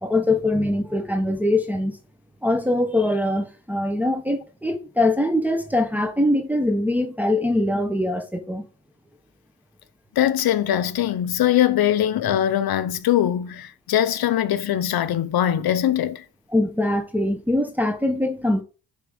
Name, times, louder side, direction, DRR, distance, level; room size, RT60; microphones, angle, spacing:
voice 1, 0.0-2.0 2.4-8.6 16.5-18.6, left 1 dB, 5° right, 1.1 m, -22 dB
voice 2, 10.2-16.2, left 11 dB, 65° left, 0.9 m, -21 dB
10.0 x 3.7 x 5.2 m
cardioid pair, 105°, 39 cm